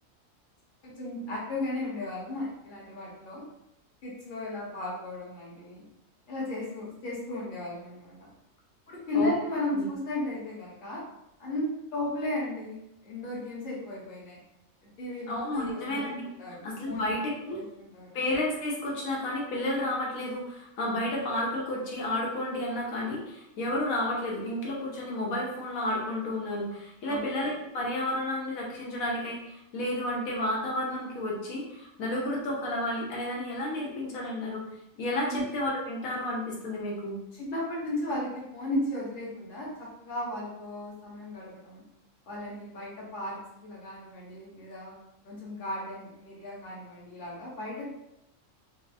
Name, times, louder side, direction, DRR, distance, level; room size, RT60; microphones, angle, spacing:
voice 1, 0.8-3.4 4.0-5.8 6.3-8.3 8.9-11.0 11.4-11.7 11.9-14.4 15.0-16.0 16.4-17.1 17.5-18.2 27.1-27.2 35.3-35.4 37.4-41.8 42.3-45.0 45.2-47.8, left 1 dB, 40° left, -5 dB, 1.1 m, -35 dB
voice 2, 15.3-17.6 18.1-34.6 35.0-37.2, left 1 dB, 90° left, -3 dB, 1.2 m, -31 dB
4.9 x 2.0 x 2.5 m, 0.85 s
omnidirectional pair, 1.4 m